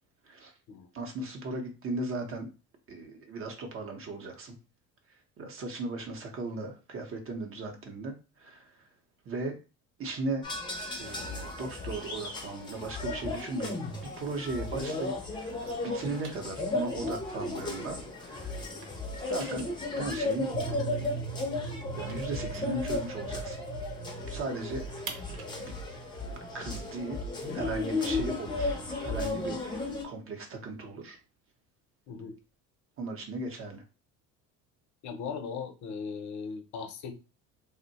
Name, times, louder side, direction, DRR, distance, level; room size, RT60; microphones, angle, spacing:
voice 1, 0.9-2.5 2.9-4.6 5.4-8.7 9.3-9.6 10.0-10.5 11.0-13.8 14.2-18.6 19.2-19.7 20.0-21.2 22.0-23.6 24.3-25.1 25.6-25.7 26.2-27.2 27.5-31.2 33.0-33.8, right 2 dB, 40° right, 4 dB, 0.7 m, -37 dB
sound 1, 10.4-30.0, left 2 dB, 15° left, 0.6 m, -35 dB
sound 2, 15.0-18.3 18.5-23.6 23.9-24.0 24.3-28.0, right 5 dB, 65° right, 0.9 m, -49 dB
sound 3, 20.5-29.0, right 5 dB, 85° right, 0.6 m, -42 dB
voice 2, 35.0-37.1, left 5 dB, 55° left, 7 dB, 0.7 m, -38 dB
2.6 x 2.1 x 3.9 m, 0.31 s
cardioid pair, 130°, 34 cm